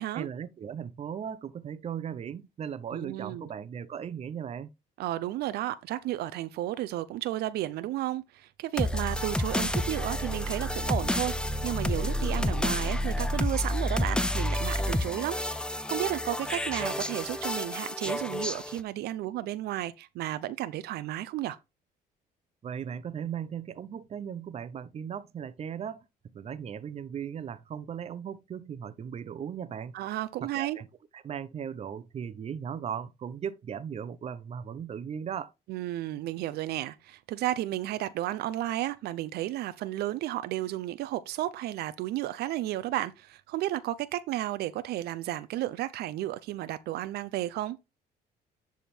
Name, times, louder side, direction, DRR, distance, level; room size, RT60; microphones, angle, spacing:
voice 1, 0.1-4.7 22.6-26.0 26.3-29.9 30.5-30.9 31.1-35.5, right 8 dB, 40° right, 0.7 m, -37 dB
voice 2, 2.9-3.5 5.0-21.6 29.9-30.8 35.7-47.8, right 14 dB, 75° right, 0.5 m, -33 dB
sound 1, 8.8-18.8, left 1 dB, 5° left, 0.7 m, -30 dB
10.0 x 3.6 x 4.3 m
cardioid pair, 110°, 17 cm